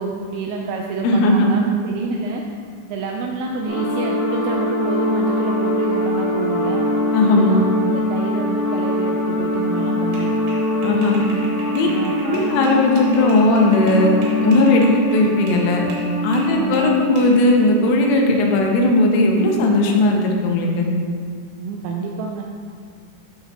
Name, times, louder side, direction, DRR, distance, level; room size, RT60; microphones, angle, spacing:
voice 1, 0.0-2.4 2.9-6.9 7.3-10.4 11.1-11.4 11.8-12.7 16.5-17.0 21.6-22.4, right 4 dB, 85° right, 0 dB, 2.5 m, -28 dB
voice 2, 1.0-1.5 7.1-7.7 10.8-11.2 11.7-11.9 12.2-15.8 16.2-20.9, left 1 dB, 85° left, 1 dB, 3.4 m, -17 dB
sound 1, 3.7-17.3, left 1 dB, 55° left, 2.6 m, -23 dB
sound 2, 10.1-15.7 15.9-17.5, right 1 dB, 65° right, 2.6 m, -38 dB
13.0 x 4.5 x 2.8 m, 2.1 s
omnidirectional pair, 5.5 m